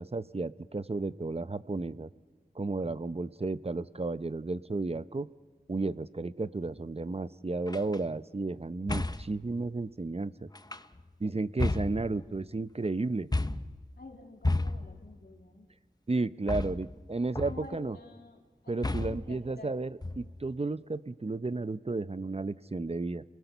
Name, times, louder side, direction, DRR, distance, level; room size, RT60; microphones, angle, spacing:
voice 1, 0.0-2.1 2.6-5.3 5.7-10.5 11.2-13.3 16.1-18.0 18.7-23.2, right 3 dB, 40° right, 14 dB, 0.6 m, -33 dB
sound 1, 7.7-8.0 8.9-9.4 10.5-11.1 11.6-12.5 13.3-13.8 14.4-15.1 16.5-17.0 17.4-17.8 18.8-19.3 20.0-20.5, left 2 dB, 25° left, 0.7 m, -32 dB
voice 2, 14.0-15.6 17.4-19.7, left 2 dB, 85° left, 2 dB, 2.9 m, -49 dB
28.0 x 20.0 x 6.9 m, 1.4 s
wide cardioid pair, 50°, 16 cm